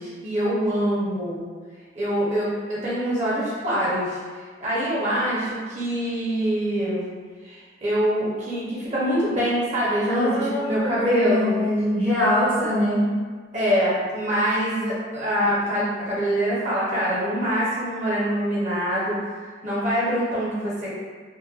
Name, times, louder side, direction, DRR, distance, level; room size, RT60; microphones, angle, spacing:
voice 1, 0.0-1.5 2.0-7.1 7.4-11.5 13.5-20.9, equal, 40° right, -7 dB, 0.6 m, -25 dB
voice 2, 10.1-13.0, left 1 dB, 10° left, -10 dB, 0.4 m, -23 dB
3.0 x 2.1 x 2.2 m, 1.5 s
head